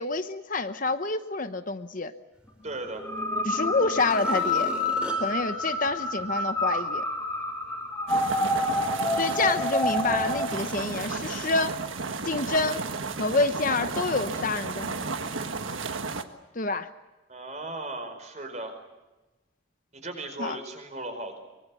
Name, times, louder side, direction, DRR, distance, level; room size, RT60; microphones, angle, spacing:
voice 1, 0.0-2.1 3.4-4.7 5.1-7.0 9.2-11.8 12.2-12.8 13.2-15.1 16.5-16.9 20.4-20.6, left 3 dB, 45° left, 10 dB, 0.9 m, -28 dB
voice 2, 2.6-3.0 17.3-18.7 19.9-21.4, right 2 dB, 35° right, 5 dB, 5.1 m, -36 dB
sound 1, 2.9-10.5, left 1 dB, 10° left, 3.4 m, -28 dB
sound 2, 3.1-3.2 3.8-6.7 7.2-7.3, equal, 5° right, 3.2 m, -41 dB
sound 3, 8.1-16.2, right 4 dB, 85° right, 1.5 m, -33 dB
24.0 x 23.0 x 8.5 m, 1.1 s
head